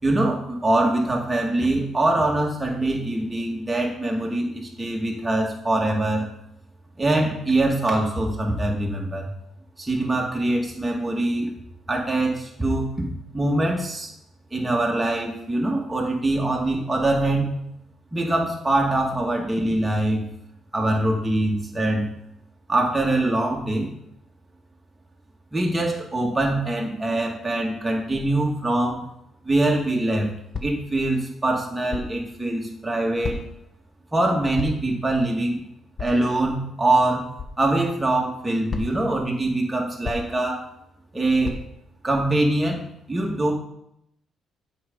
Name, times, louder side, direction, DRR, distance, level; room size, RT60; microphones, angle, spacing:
voice 1, 0.0-6.3 7.0-9.3 9.8-11.5 11.9-12.9 13.3-14.1 14.5-17.5 18.1-20.3 20.7-22.1 22.7-23.9 25.5-29.1 29.4-30.3 30.6-33.4 34.1-35.6 36.0-37.3 37.6-40.7 41.1-41.5 42.0-43.5, right 2 dB, 15° right, -1 dB, 2.0 m, -23 dB
sound 1, 30.5-30.9 31.9-32.2 33.2-33.7 34.6-34.9 36.0-36.2 37.4-37.6 38.7-39.1 40.0-40.4 41.4-41.6, left 4 dB, 40° left, 1.1 m, -32 dB
7.7 x 5.1 x 5.4 m, 0.78 s
cardioid pair, 90°, 0 cm